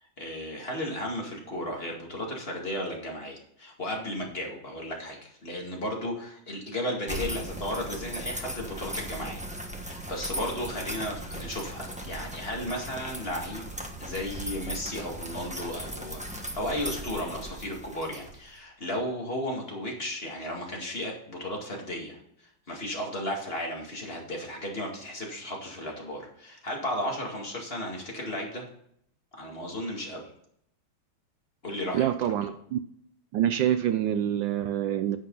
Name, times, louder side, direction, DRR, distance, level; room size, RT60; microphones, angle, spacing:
voice 1, 0.2-9.5 9.8-13.6 14.0-28.7 29.3-30.3 31.6-32.3, left 1 dB, 30° left, -1 dB, 2.2 m, -34 dB
sound 1, 7.1-18.6, right 1 dB, 5° right, 0.8 m, -38 dB
voice 2, 31.9-32.8 33.3-35.2, right 11 dB, 75° right, 10 dB, 1.2 m, -26 dB
10.0 x 8.0 x 3.9 m, 0.69 s
omnidirectional pair, 2.2 m